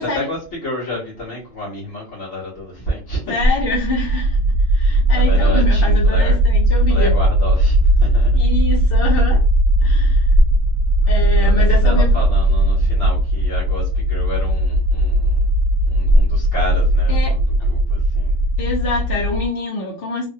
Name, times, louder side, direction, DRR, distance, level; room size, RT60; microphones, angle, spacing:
voice 1, 0.0-3.2 5.1-6.4 6.8-8.4 11.3-15.5 15.9-18.4, left 1 dB, 80° left, -6 dB, 1.7 m, -30 dB
voice 2, 3.3-4.4 4.7-7.1 8.3-9.4 9.8-10.3 11.1-12.1 17.1-17.3 18.6-20.3, left 2 dB, 55° left, -2 dB, 0.8 m, -25 dB
sound 1, 3.4-19.5, right 1 dB, 70° right, 0.8 m, -16 dB
3.3 x 2.2 x 2.6 m, 0.34 s
omnidirectional pair, 1.3 m